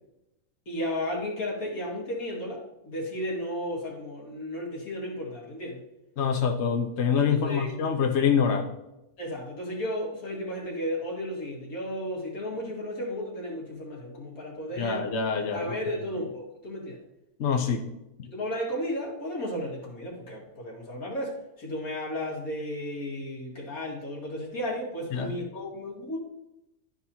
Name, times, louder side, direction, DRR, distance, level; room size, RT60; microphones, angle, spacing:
voice 1, 0.7-5.8 7.3-7.7 9.2-15.0 15.5-17.0 18.3-26.2, left 1 dB, 75° left, -3 dB, 2.4 m, -34 dB
voice 2, 6.2-8.7 14.8-15.8 17.4-17.8 25.1-25.3, left 6 dB, 55° left, 2 dB, 0.9 m, -25 dB
12.0 x 4.6 x 2.8 m, 0.91 s
omnidirectional pair, 1.5 m